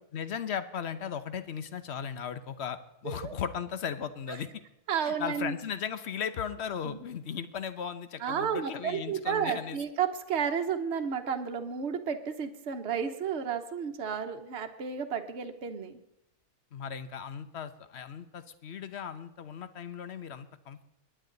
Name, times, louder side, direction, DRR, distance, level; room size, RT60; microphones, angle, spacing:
voice 1, 0.1-4.5 5.1-9.8 16.7-20.9, left 7 dB, 50° left, 12 dB, 1.1 m, -37 dB
voice 2, 3.0-3.4 4.3-4.4 4.9-5.5 6.8-7.0 8.2-15.9, right 7 dB, 50° right, 5 dB, 1.3 m, -32 dB
21.5 x 10.0 x 4.0 m, 0.87 s
omnidirectional pair, 1.6 m